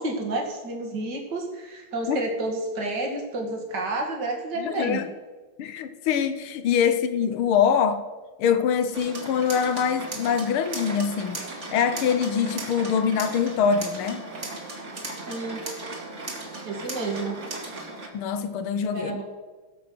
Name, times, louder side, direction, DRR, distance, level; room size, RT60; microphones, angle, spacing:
voice 1, 0.0-5.0 5.6-5.7 15.3-15.6 16.6-17.4 18.9-19.2, right 2 dB, 55° right, 2.7 m, -30 dB
voice 2, 4.6-5.1 5.6-8.0 8.4-11.4 11.7-14.2 18.1-19.1, left 7 dB, 85° left, 1.8 m, -24 dB
sound 1, 8.9-18.1, right 2 dB, 35° right, 2.4 m, -36 dB
17.0 x 7.7 x 6.1 m
omnidirectional pair, 2.3 m